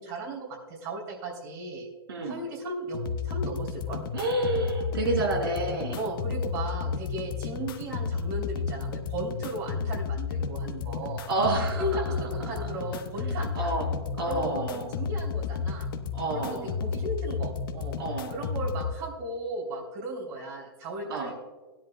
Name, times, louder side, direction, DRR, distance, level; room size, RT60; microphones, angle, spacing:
voice 1, 0.0-1.9 2.2-4.0 6.0-11.3 11.8-13.7 14.3-15.9 16.3-18.0 18.3-21.3, right 2 dB, 50° right, -2 dB, 3.1 m, -36 dB
voice 2, 2.1-2.4 4.1-6.0 11.3-12.0 12.4-12.7 13.5-13.9 14.2-14.9 16.1-16.7 18.0-18.3 21.1-21.3, right 2 dB, 75° right, 0 dB, 3.8 m, -29 dB
sound 1, 2.9-18.9, left 5 dB, 65° left, 1.0 m, -32 dB
16.0 x 10.5 x 2.2 m, 1.3 s
hypercardioid pair, 125°, 13 cm